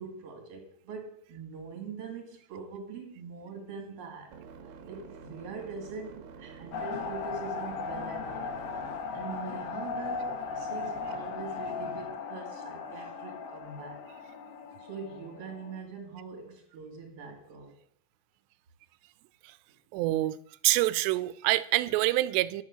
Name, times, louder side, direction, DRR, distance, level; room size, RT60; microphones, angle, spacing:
voice 1, 0.0-4.3 4.9-8.6 9.1-14.0 14.8-17.8, right 4 dB, 40° right, 3.2 m, -43 dB
sound 1, 3.2-9.2, right 6 dB, 70° right, 2.6 m, -49 dB
sound 2, 6.7-15.8, left 5 dB, 75° left, 3.1 m, -37 dB
voice 2, 19.9-20.4 20.6-22.6, right 17 dB, 85° right, 2.8 m, -26 dB
10.5 x 7.3 x 6.1 m
omnidirectional pair, 4.9 m